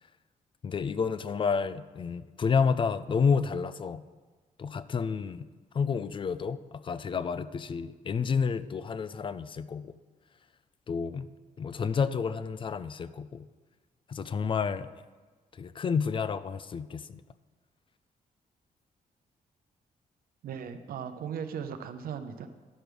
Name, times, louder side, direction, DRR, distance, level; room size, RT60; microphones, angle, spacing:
voice 1, 0.6-4.0 4.6-5.5 5.7-9.9 10.9-11.3 11.6-13.5 14.1-14.9 15.6-17.2, left 5 dB, 35° left, 15 dB, 0.4 m, -30 dB
voice 2, 20.4-22.5, right 7 dB, 85° right, 9 dB, 0.7 m, -37 dB
11.0 x 5.1 x 6.1 m, 1.4 s
cardioid pair, 125°, 15 cm